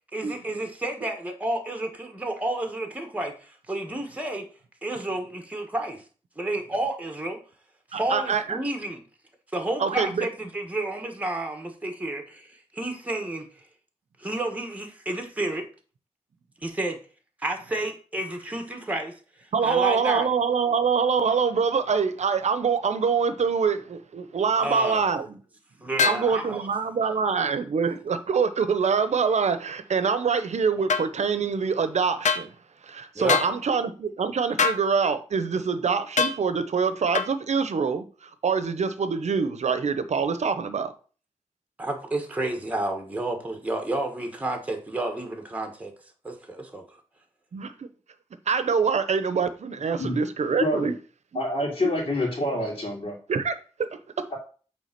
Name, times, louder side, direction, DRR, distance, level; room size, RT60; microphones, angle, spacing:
voice 1, 0.1-4.4 4.8-6.0 6.4-7.4 7.9-9.0 9.5-13.4 14.2-15.6 16.6-17.0 17.4-19.1 19.6-20.3 24.6-25.1 25.8-26.7 27.0-27.2 33.1-33.5 41.8-45.9 46.2-46.8, right 2 dB, 10° right, 1.4 m, -31 dB
voice 2, 7.9-8.6 9.8-10.3 19.5-25.4 26.0-32.5 32.8-40.9 47.5-47.9 48.5-50.9 52.5-52.6 53.3-54.3, right 5 dB, 70° right, 0.9 m, -25 dB
sound 1, 26.0-26.3 30.9-31.1 32.2-32.5 33.3-33.5 34.6-34.8 36.2-36.4 37.1-37.3, left 6 dB, 85° left, 0.7 m, -23 dB
voice 3, 50.6-50.9 51.3-53.2, left 1 dB, 50° left, 2.7 m, -27 dB
8.5 x 3.5 x 5.9 m
wide cardioid pair, 155°, 12 cm